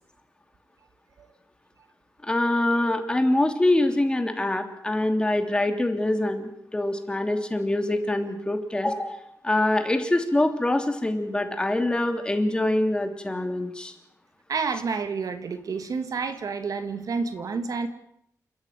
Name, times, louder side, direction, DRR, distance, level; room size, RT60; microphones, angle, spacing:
voice 1, 2.2-13.9, left 1 dB, 15° left, 2.9 m, -24 dB
voice 2, 14.5-17.9, right 5 dB, 65° right, 2.4 m, -29 dB
29.0 x 15.0 x 9.4 m
wide cardioid pair, 135°, 6 cm